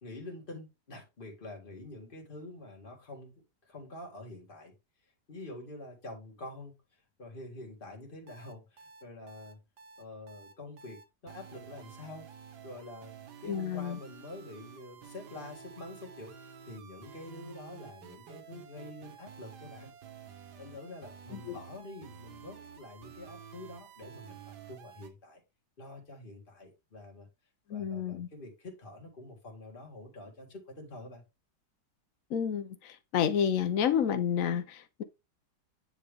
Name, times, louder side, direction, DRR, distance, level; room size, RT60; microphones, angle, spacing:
voice 1, 0.0-3.3 3.6-4.7 5.3-9.6 10.0-12.3 12.6-19.9 20.6-24.4 24.7-25.4 25.8-27.3 27.7-31.2, left 2 dB, 30° left, 2.2 m, -47 dB
sound 1, 8.3-25.1, right 7 dB, 80° right, 1.6 m, -51 dB
voice 2, 13.4-14.0 21.5-21.6 27.7-28.3 32.3-35.0, left 8 dB, 60° left, 1.1 m, -30 dB
9.7 x 3.5 x 3.5 m
omnidirectional pair, 1.8 m